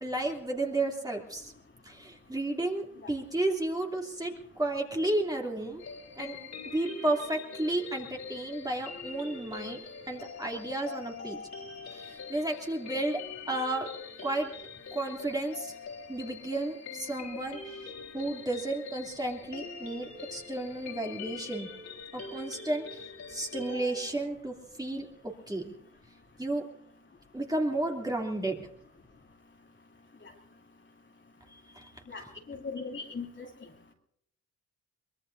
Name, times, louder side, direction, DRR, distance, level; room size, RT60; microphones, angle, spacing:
voice 1, 0.0-1.5 1.8-5.8 6.2-6.4 6.7-9.8 10.1-11.4 11.9-13.2 13.5-13.9 14.2-14.5 14.9-15.7 16.1-21.7 22.1-23.0 23.3-25.7 26.4-26.6 27.3-28.7 31.7-31.9, right 2 dB, 10° right, 0 dB, 2.9 m, -32 dB
sound 1, 5.8-24.1, left 5 dB, 55° left, 3.9 m, -44 dB
voice 2, 32.1-33.5, left 4 dB, 35° left, 1 dB, 2.7 m, -39 dB
23.5 x 20.5 x 2.7 m, 0.71 s
cardioid pair, 75°, 32 cm